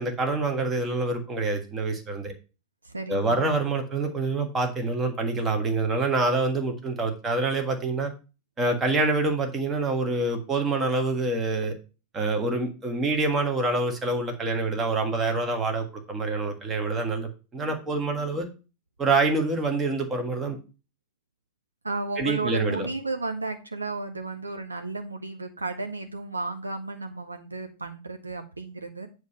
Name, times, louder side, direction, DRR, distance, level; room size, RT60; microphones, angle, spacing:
voice 1, 0.0-2.3 3.1-8.1 8.6-11.7 12.1-18.5 19.0-20.6 22.2-22.9, right 3 dB, 20° right, 4 dB, 1.5 m, -26 dB
voice 2, 2.8-3.4 21.8-29.1, right 3 dB, 80° right, 6 dB, 0.6 m, -33 dB
8.2 x 3.2 x 5.5 m, 0.33 s
figure-of-eight pair, 90°, 0 cm